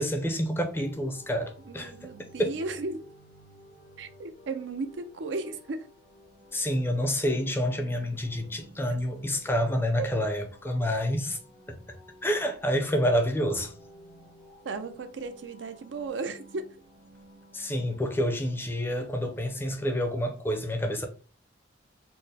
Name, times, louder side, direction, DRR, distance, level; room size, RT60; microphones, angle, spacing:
voice 1, 0.0-1.9 2.4-2.5 6.5-11.4 11.7-12.0 12.2-13.7 17.5-21.1, equal, 10° left, 0.5 m, -28 dB
sound 1, 0.5-20.3, equal, 90° left, 1.7 m, -54 dB
voice 2, 1.7-3.0 4.0-5.9 10.0-10.1 14.6-16.8, right 3 dB, 70° right, 0.5 m, -35 dB
4.4 x 2.0 x 3.3 m
head